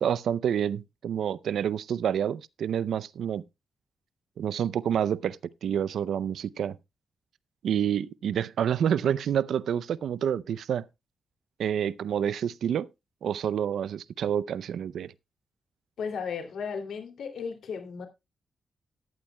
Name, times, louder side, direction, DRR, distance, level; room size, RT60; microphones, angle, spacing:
voice 1, 0.0-3.4 4.4-5.4 5.6-6.8 7.6-10.9 11.6-12.9 13.2-15.1, right 9 dB, 85° right, 0.5 m, -28 dB
voice 2, 16.0-18.1, left 6 dB, 75° left, 2.7 m, -35 dB
13.5 x 11.5 x 2.3 m
wide cardioid pair, 180°, 0 cm